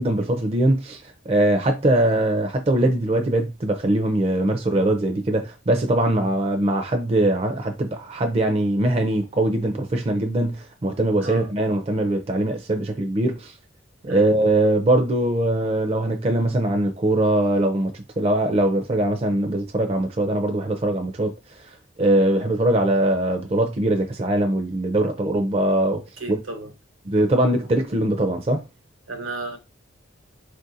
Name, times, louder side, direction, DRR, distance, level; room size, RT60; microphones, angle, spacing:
voice 1, 0.0-13.5 14.0-21.3 22.0-26.0 26.3-26.4 27.1-28.6, right 1 dB, 30° right, 0.4 m, -21 dB
voice 2, 26.2-26.7 29.1-29.6, right 2 dB, 90° right, 1.0 m, -34 dB
4.2 x 2.5 x 2.6 m
head